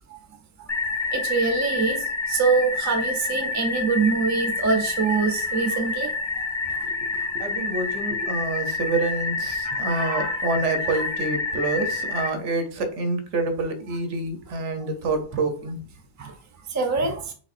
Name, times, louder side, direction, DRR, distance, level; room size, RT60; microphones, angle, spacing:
sound 1, 0.7-12.3, left 4 dB, 30° left, 0.6 m, -28 dB
voice 1, 1.1-6.1 9.6-10.5 10.9-11.1 16.2-16.3 16.7-17.3, right 4 dB, 20° right, 5 dB, 0.5 m, -25 dB
voice 2, 7.3-15.8, right 3 dB, 85° right, 8 dB, 1.1 m, -27 dB
5.2 x 3.4 x 2.5 m, 0.41 s
omnidirectional pair, 1.2 m